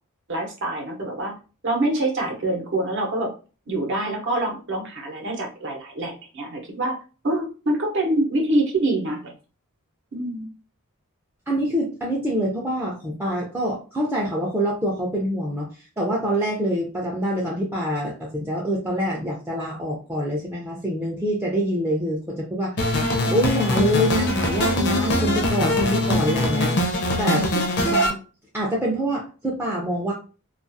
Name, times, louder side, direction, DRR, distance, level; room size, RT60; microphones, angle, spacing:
voice 1, 0.3-1.3 1.6-3.3 3.7-7.0 7.2-9.3 10.1-10.5 27.3-27.6, right 1 dB, 55° right, 1 dB, 0.7 m, -25 dB
voice 2, 11.5-15.7 16.0-22.8 23.3-26.8 27.2-27.4 27.9-28.1 28.5-30.1, equal, 10° right, -4 dB, 0.4 m, -25 dB
sound 1, 22.8-28.1, left 1 dB, 50° left, 0.5 m, -22 dB
2.4 x 2.3 x 2.6 m, 0.35 s
head